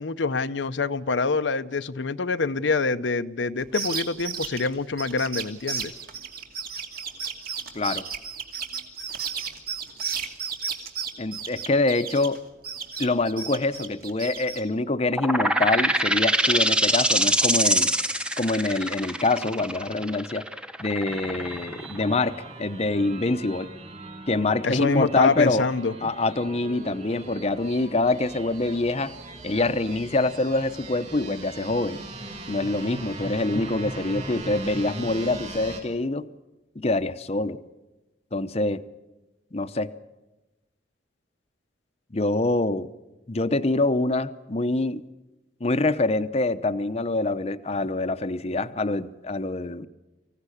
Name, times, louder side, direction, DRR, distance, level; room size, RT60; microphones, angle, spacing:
voice 1, 0.0-5.9 24.6-25.9, left 4 dB, 85° left, 10 dB, 0.8 m, -25 dB
sound 1, 3.6-12.4 12.6-14.6, right 6 dB, 55° right, 2.5 m, -33 dB
voice 2, 11.2-12.4 13.0-17.9 18.4-20.4 20.8-23.7 24.3-25.6 26.0-29.1 29.4-32.0 32.5-36.3 36.8-37.6 38.3-38.8 39.5-39.9 42.1-42.9 43.3-45.0 45.6-49.9, left 2 dB, 35° left, 10 dB, 0.8 m, -25 dB
sound 2, 15.1-22.5, equal, 5° right, 0.9 m, -24 dB
sound 3, 21.0-35.8, right 2 dB, 40° right, 5.7 m, -40 dB
25.0 x 16.0 x 9.9 m, 1.1 s
head